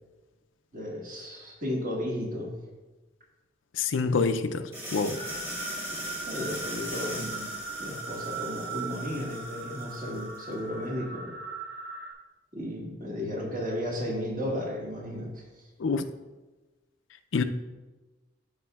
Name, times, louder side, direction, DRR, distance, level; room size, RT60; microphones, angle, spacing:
voice 1, 0.7-2.5 6.3-7.5 7.8-11.4 12.5-15.4, left 1 dB, 45° right, 1.8 m, -34 dB
voice 2, 3.7-5.2 15.8-16.0 17.3-17.4, left 4 dB, 90° left, 0.5 m, -27 dB
sound 1, 4.7-10.4, right 1 dB, 15° right, 1.5 m, -40 dB
sound 2, 5.1-12.1, right 4 dB, 80° right, 1.5 m, -39 dB
12.5 x 5.1 x 2.3 m
head